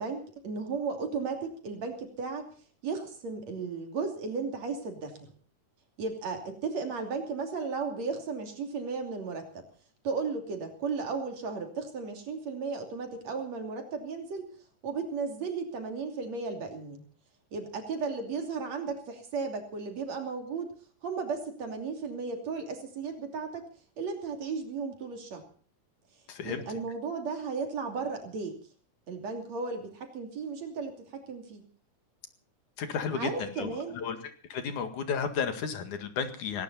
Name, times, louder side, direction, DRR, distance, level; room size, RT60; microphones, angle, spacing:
voice 1, 0.0-2.5 2.8-5.3 6.0-9.6 10.0-14.5 14.8-17.0 17.5-20.7 21.0-23.7 24.0-25.4 26.4-28.6 29.1-31.6 33.1-34.0, right 4 dB, 60° right, 5 dB, 4.0 m, -35 dB
voice 2, 26.3-26.6 32.8-34.2 34.5-36.6, left 6 dB, 75° left, 8 dB, 3.4 m, -33 dB
18.5 x 18.5 x 4.1 m, 0.42 s
omnidirectional pair, 3.5 m